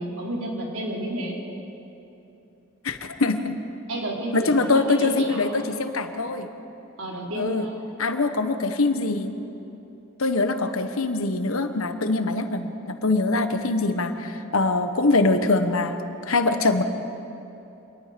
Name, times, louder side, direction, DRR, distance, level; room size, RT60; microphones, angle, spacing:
voice 1, 0.0-1.4 3.9-5.6 7.0-7.8, right 1 dB, 80° right, -2 dB, 4.2 m, -31 dB
voice 2, 2.8-3.6 4.3-6.5 7.4-7.6 8.0-9.3 10.2-16.0 16.3-16.8, left 3 dB, 90° left, 8 dB, 1.3 m, -23 dB
26.0 x 19.5 x 5.3 m, 2.9 s
head